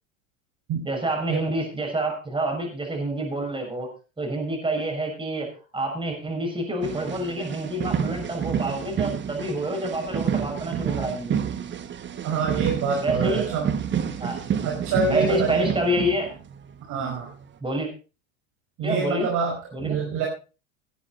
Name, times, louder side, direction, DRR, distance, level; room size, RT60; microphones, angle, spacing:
voice 1, 0.8-3.9 4.2-11.5 13.0-13.5 14.2-14.8 15.0-16.4 17.0-17.2 17.6-17.9 18.8-19.3 19.7-20.0, right 1 dB, 15° right, 2 dB, 6.4 m, -28 dB
sound 1, 6.8-16.7 17.2-17.4, right 8 dB, 30° right, 1.4 m, -29 dB
voice 2, 12.2-13.7 14.6-15.7 16.9-17.3 18.8-20.3, right 4 dB, 50° right, 0 dB, 5.1 m, -26 dB
18.5 x 9.7 x 4.2 m, 0.34 s
supercardioid pair, 105°, 38 cm